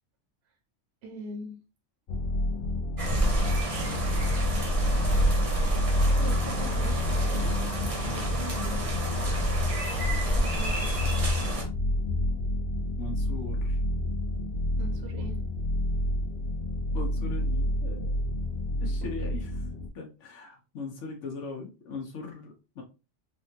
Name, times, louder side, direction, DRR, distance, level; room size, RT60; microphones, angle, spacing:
voice 1, 1.0-1.6 5.6-5.8 6.0-7.5 8.1-8.9 10.2-10.9 14.8-15.4, right 2 dB, 65° right, 3 dB, 0.8 m, -42 dB
sound 1, 2.1-19.9, left 1 dB, 60° left, 0.6 m, -28 dB
sound 2, 3.0-11.6, right 1 dB, 35° right, 0.7 m, -30 dB
voice 2, 13.0-13.8 16.9-18.1 18.8-19.6 19.9-22.8, left 3 dB, 75° left, 1 dB, 1.1 m, -40 dB
3.5 x 2.3 x 2.7 m, 0.30 s
omnidirectional pair, 1.3 m